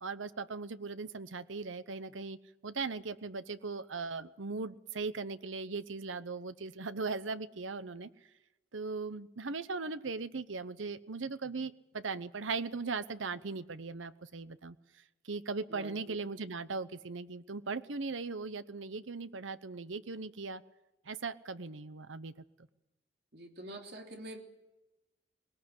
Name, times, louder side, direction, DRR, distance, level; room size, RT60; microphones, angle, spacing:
voice 1, 0.0-2.4 2.6-8.1 8.7-14.8 15.2-20.6 21.1-22.3, right 4 dB, 85° right, 13 dB, 0.9 m, -38 dB
voice 2, 15.7-16.2 23.3-24.4, right 1 dB, 55° right, 2 dB, 3.3 m, -46 dB
20.5 x 18.5 x 8.1 m, 1.0 s
head